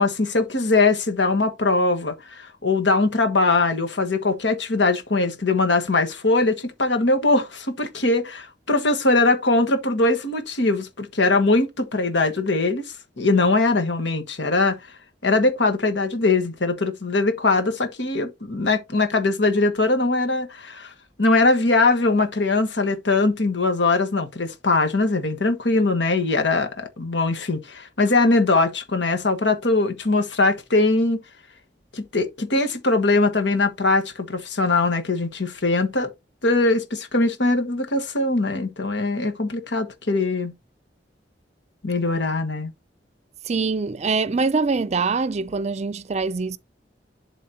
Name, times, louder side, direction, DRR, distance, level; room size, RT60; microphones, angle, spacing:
voice 1, 0.0-14.8 15.2-20.9 21.2-31.2 31.9-36.1 36.4-40.5 41.8-42.7, left 3 dB, 90° left, 1.5 m, -21 dB
voice 2, 43.4-46.6, right 4 dB, 40° right, 0.5 m, -24 dB
11.5 x 3.8 x 2.9 m
head